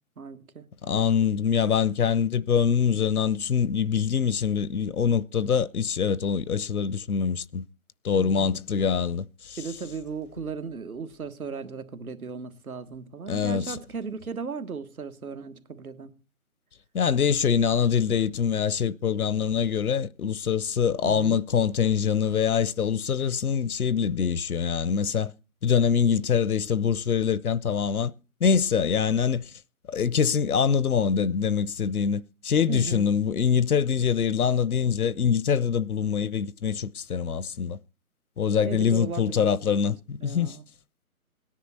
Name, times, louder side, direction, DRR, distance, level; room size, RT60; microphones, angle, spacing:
voice 1, 0.2-0.7 8.1-8.6 9.6-16.2 21.0-21.4 32.7-33.1 38.6-39.3 40.2-40.6, right 5 dB, 80° right, 1.7 m, -36 dB
voice 2, 0.8-7.7 8.0-9.9 13.3-13.8 16.9-25.3 25.6-28.1 28.4-29.5 29.9-37.8 38.4-40.6, left 7 dB, 85° left, 0.8 m, -24 dB
17.5 x 10.0 x 4.2 m
hypercardioid pair, 160°, 43 cm